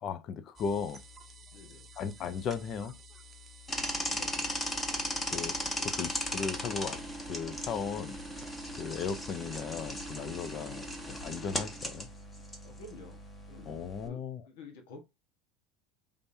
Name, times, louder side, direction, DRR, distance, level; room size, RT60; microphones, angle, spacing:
voice 1, 0.0-1.0 2.0-3.0 5.3-7.0 7.3-8.2 8.8-12.1 13.7-14.4, left 6 dB, 40° left, 0.6 m, -36 dB
sound 1, 0.6-11.3, left 1 dB, 20° right, 0.8 m, -52 dB
voice 2, 1.5-1.9 4.0-4.7 8.7-9.0 10.5-10.9 12.6-15.0, left 3 dB, 80° left, 1.4 m, -51 dB
sound 2, 3.7-14.1, left 1 dB, 15° left, 1.1 m, -37 dB
5.1 x 3.5 x 2.7 m
supercardioid pair, 145°, 0 cm